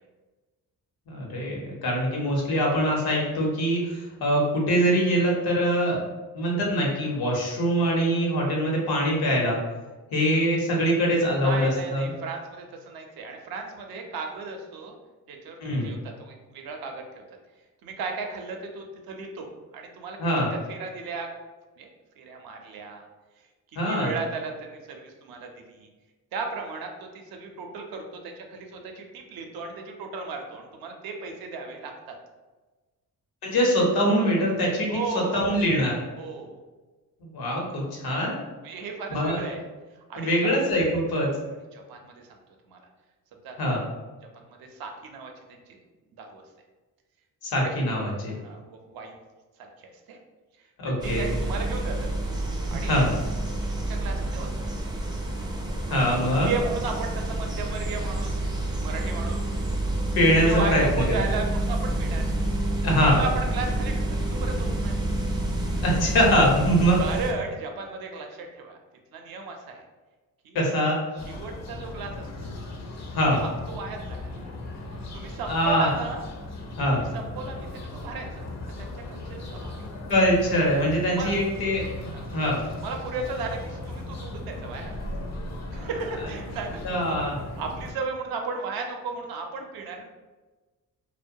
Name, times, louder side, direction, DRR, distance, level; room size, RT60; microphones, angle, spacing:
voice 1, 1.1-6.0 6.3-9.6 10.1-12.1 15.6-15.9 20.2-20.5 23.8-24.1 33.4-36.0 37.2-38.3 39.1-39.4 40.2-41.3 43.6-43.8 47.4-48.4 50.8-51.3 52.7-53.1 55.9-56.5 60.1-61.2 62.8-63.2 65.8-67.0 70.5-71.0 73.1-73.4 75.5-75.9 76.8-77.0 80.1-82.6 86.8-87.4, equal, 75° left, -2 dB, 0.8 m, -23 dB
voice 2, 11.4-15.0 15.3-17.2 17.8-20.2 20.7-21.3 21.8-21.9 22.2-23.1 23.9-25.9 26.3-32.2 34.9-35.4 36.2-36.6 38.6-39.6 39.9-40.5 41.7-42.3 42.7-42.8 43.4-43.6 44.3-45.6 46.2-46.4 47.6-47.7 48.4-49.2 49.6-50.2 51.0-52.1 52.7-53.0 53.7-54.5 55.9-58.4 58.8-59.4 60.4-62.3 63.1-64.9 67.0-68.8 69.1-69.8 70.4-70.7 71.2-72.5 73.4-74.2 75.1-76.2 77.0-78.4 78.8-79.8 81.1-81.3 82.1-82.4 82.8-85.1 85.7-87.2 87.6-90.1, right 4 dB, 70° right, 3 dB, 0.5 m, -35 dB
sound 1, 51.0-67.3, right 1 dB, 10° right, 0.4 m, -28 dB
sound 2, 71.2-87.9, left 2 dB, 45° left, 0.5 m, -37 dB
2.2 x 2.1 x 2.6 m, 1.2 s
cardioid pair, 75°, 37 cm